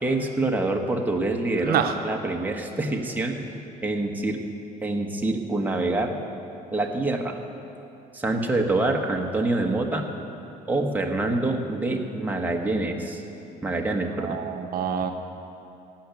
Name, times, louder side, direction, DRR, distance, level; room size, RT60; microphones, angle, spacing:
voice 1, 0.0-4.4 4.8-6.2 6.7-7.4 8.1-10.1 10.7-13.2 13.6-14.4, right 2 dB, 10° right, 1 dB, 1.2 m, -26 dB
voice 2, 1.6-1.9 14.1-15.1, right 8 dB, 60° right, 5 dB, 0.8 m, -26 dB
16.0 x 5.9 x 9.2 m, 2.8 s
cardioid pair, 110°, 17 cm